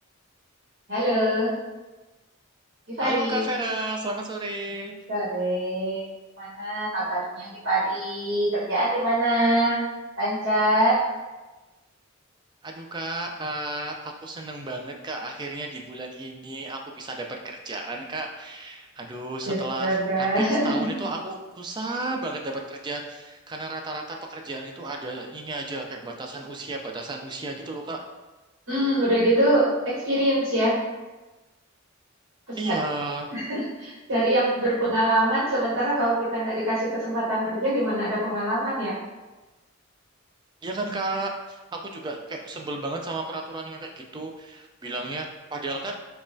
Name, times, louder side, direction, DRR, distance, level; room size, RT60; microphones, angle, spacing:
voice 1, 0.9-1.5 2.9-3.5 5.1-6.1 6.4-9.8 10.2-11.0 19.4-21.0 28.7-30.8 32.5-32.8 33.3-39.0, right 1 dB, 65° right, -9 dB, 1.1 m, -24 dB
voice 2, 3.0-5.0 12.6-28.0 32.5-33.3 40.6-45.9, right 2 dB, 20° right, 2 dB, 0.3 m, -33 dB
5.0 x 2.2 x 2.6 m, 1.2 s
head